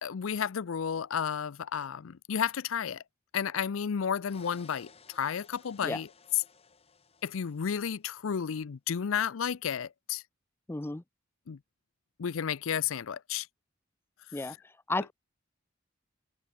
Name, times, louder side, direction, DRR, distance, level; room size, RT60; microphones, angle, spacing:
voice 1, 0.0-3.0 3.3-6.1 7.2-10.2 11.5-11.6 12.2-13.5, left 7 dB, 85° left, 0.5 m, -32 dB
sound 1, 4.2-8.1, left 5 dB, 30° left, 1.5 m, -58 dB
voice 2, 10.7-11.0 14.3-14.6 14.9-15.1, left 2 dB, 10° left, 0.5 m, -32 dB
open air
head